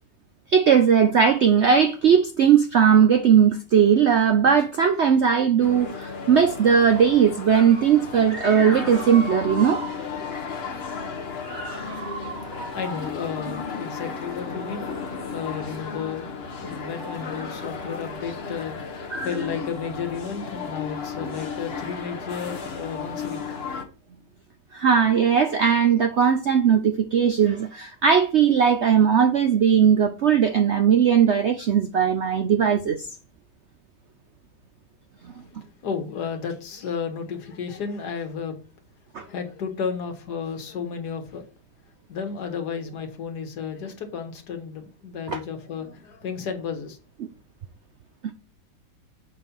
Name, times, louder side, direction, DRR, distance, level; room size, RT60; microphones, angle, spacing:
voice 1, 0.5-10.0 11.4-12.7 17.1-17.2 19.1-19.3 24.7-33.1 35.2-35.3 39.1-39.2 45.3-45.4, right 7 dB, 85° right, 0.6 m, -19 dB
sound 1, 5.6-23.8, left 5 dB, 40° left, 1.2 m, -34 dB
voice 2, 12.4-14.9 15.2-16.3 16.6-23.4 35.4-38.6 39.2-41.4 42.1-47.0, left 6 dB, 60° left, 1.9 m, -33 dB
7.4 x 4.4 x 5.5 m
omnidirectional pair, 2.0 m